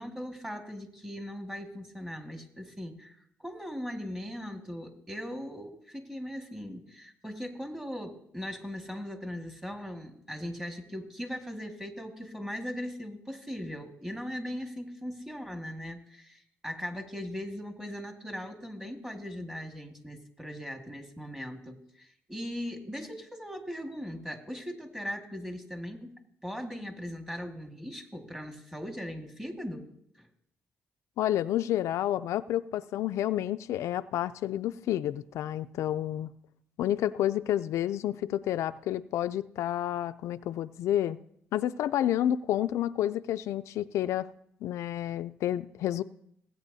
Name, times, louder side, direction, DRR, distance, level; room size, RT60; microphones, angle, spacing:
voice 1, 0.0-26.2 26.4-29.9 30.2-30.3, equal, 10° right, 4 dB, 1.8 m, -39 dB
voice 2, 31.2-36.3 36.8-41.2 41.5-44.3 44.6-46.0, left 12 dB, 80° left, 12 dB, 0.3 m, -30 dB
17.0 x 8.8 x 2.7 m, 0.71 s
cardioid pair, 85°, 5 cm